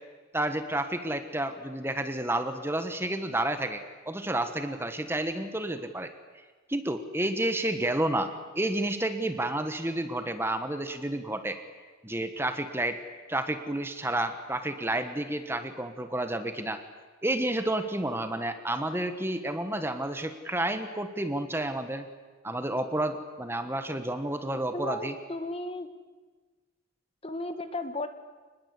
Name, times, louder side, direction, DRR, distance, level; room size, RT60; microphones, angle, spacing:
voice 1, 0.3-6.1 6.7-11.6 12.0-13.0 13.3-16.8 17.2-22.1 22.4-25.1, right 1 dB, 10° right, 8 dB, 1.4 m, -30 dB
voice 2, 24.7-25.9 27.2-28.1, left 2 dB, 30° left, 9 dB, 1.5 m, -34 dB
27.5 x 20.5 x 8.4 m, 1.3 s
head